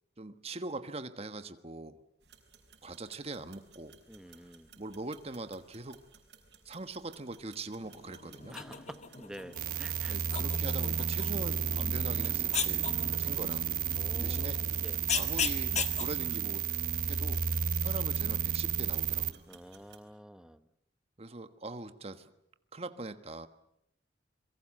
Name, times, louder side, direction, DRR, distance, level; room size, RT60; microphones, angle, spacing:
voice 1, 0.2-2.0 2.8-3.9 4.8-6.0 6.6-8.5 10.1-13.7 14.2-14.6 15.1-16.6 17.1-17.4 17.8-19.4 21.2-22.3 22.7-23.5, right 2 dB, 35° right, 10 dB, 1.4 m, -42 dB
sound 1, 2.2-20.0, right 6 dB, 75° right, 5.2 m, -59 dB
voice 2, 4.1-4.7 8.5-10.2 12.7-13.5 13.9-15.0 19.5-20.7, equal, 5° right, 11 dB, 1.0 m, -49 dB
sound 2, 7.8-16.1, left 7 dB, 40° left, 1.7 m, -39 dB
sound 3, 9.6-19.3, right 7 dB, 55° right, 1.1 m, -32 dB
27.5 x 23.0 x 7.6 m, 0.77 s
head